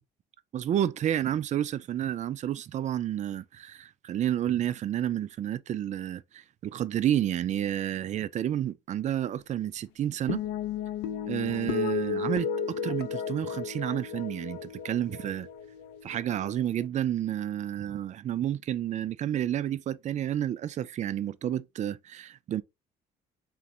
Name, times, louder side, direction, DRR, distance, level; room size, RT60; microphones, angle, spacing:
voice 1, 0.5-10.4 11.3-12.5 12.8-15.5 16.0-22.6, right 11 dB, 45° right, 0.4 m, -30 dB
sound 1, 10.3-16.9, left 6 dB, 85° left, 0.5 m, -34 dB
3.7 x 2.5 x 4.2 m
cardioid pair, 110°, 17 cm